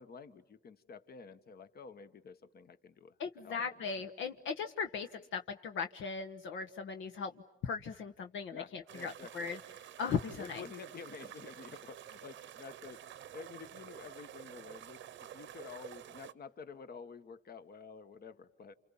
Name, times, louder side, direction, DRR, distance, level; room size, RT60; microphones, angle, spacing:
voice 1, 0.0-3.1 3.4-3.6 4.2-4.3 8.5-9.5 10.4-13.0 13.3-15.1 15.3-18.7, left 5 dB, 50° left, 11 dB, 1.4 m, -50 dB
voice 2, 3.2-7.3 7.6-9.6 10.0-10.6, left 6 dB, 75° left, 5 dB, 1.2 m, -38 dB
sound 1, 8.9-16.3, right 11 dB, 75° right, 0.9 m, -50 dB
30.0 x 28.0 x 7.2 m, 0.88 s
cardioid pair, 90°, 20 cm